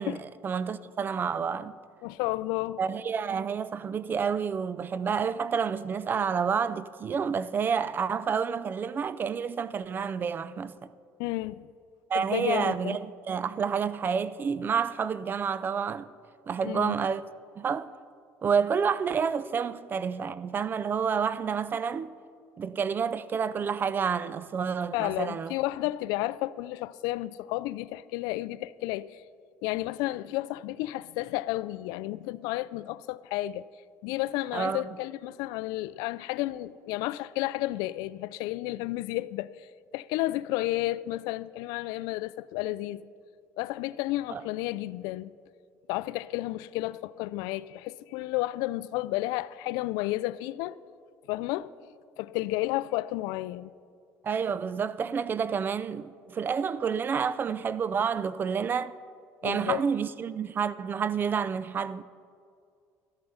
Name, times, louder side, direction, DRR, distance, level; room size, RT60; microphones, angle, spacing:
voice 1, 0.0-1.8 2.8-10.9 12.1-16.1 16.5-17.2 17.6-17.9 18.4-22.1 22.6-25.6 34.5-35.0 44.3-44.4 54.2-58.9 59.4-62.0, right 6 dB, 30° right, 0.4 m, -29 dB
voice 2, 2.0-2.8 11.2-11.7 12.1-13.0 16.6-16.9 24.9-29.2 29.6-33.6 34.0-39.5 39.9-43.0 43.6-45.3 45.9-50.8 51.3-51.7 52.2-53.7 59.4-59.8, left 17 dB, 85° left, 0.3 m, -32 dB
13.0 x 10.5 x 5.5 m
cardioid pair, 120°, 7 cm